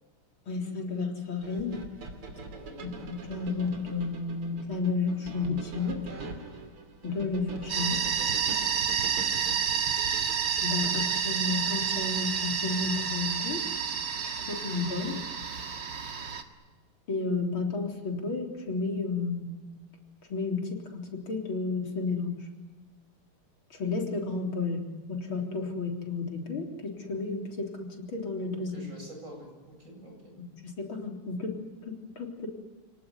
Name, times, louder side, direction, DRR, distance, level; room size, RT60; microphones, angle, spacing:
voice 1, 0.5-1.8 2.8-6.0 7.0-8.0 10.6-13.6 14.4-15.2 17.1-19.6 20.3-22.4 23.7-24.8 25.1-28.7 30.6-31.5 31.9-32.5, left 4 dB, 65° left, 2 dB, 4.5 m, -32 dB
sound 1, 1.4-11.4, right 3 dB, 90° right, 3.7 m, -43 dB
voice 2, 2.5-2.8 9.7-9.8 28.7-30.3, equal, 35° right, 2 dB, 8.5 m, -47 dB
sound 2, 7.7-16.4, right 7 dB, 55° right, 2.5 m, -29 dB
29.5 x 18.5 x 9.8 m, 1.3 s
omnidirectional pair, 2.4 m